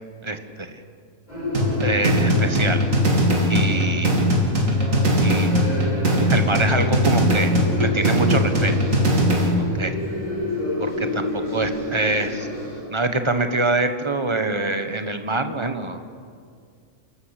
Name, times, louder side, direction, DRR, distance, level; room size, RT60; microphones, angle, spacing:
voice 1, 0.2-0.8 1.8-2.8 3.5-4.1 5.2-5.5 6.3-8.7 9.8-9.9 10.8-12.5 12.9-16.0, right 2 dB, 20° right, 8 dB, 1.3 m, -25 dB
sound 1, 1.3-12.8, left 1 dB, 30° left, 7.8 m, -30 dB
sound 2, 1.5-9.5, equal, 70° right, 3.5 m, -20 dB
29.5 x 13.5 x 8.3 m, 2.2 s
omnidirectional pair, 1.4 m